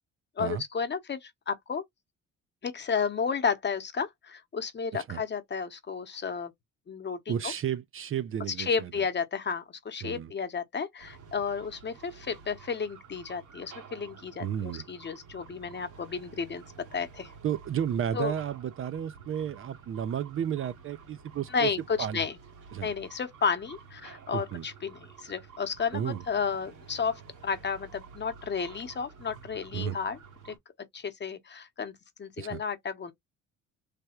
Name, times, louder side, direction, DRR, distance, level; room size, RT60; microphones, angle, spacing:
voice 1, 0.4-1.8 2.6-6.5 6.9-7.5 8.6-16.6 16.9-17.3 18.1-18.3 21.5-22.4 22.8-30.2 30.4-30.5 30.9-31.9 32.2-33.1, left 6 dB, 35° left, 0.9 m, -32 dB
voice 2, 7.3-8.9 10.0-10.3 14.4-14.8 17.4-21.7 22.0-22.2 22.7-22.9 24.3-24.6 25.9-26.2 29.7-30.0 32.4-32.6, right 9 dB, 45° right, 0.4 m, -32 dB
sound 1, 11.0-30.6, right 6 dB, 90° right, 1.7 m, -51 dB
3.4 x 2.2 x 4.3 m
cardioid pair, 90°, 30 cm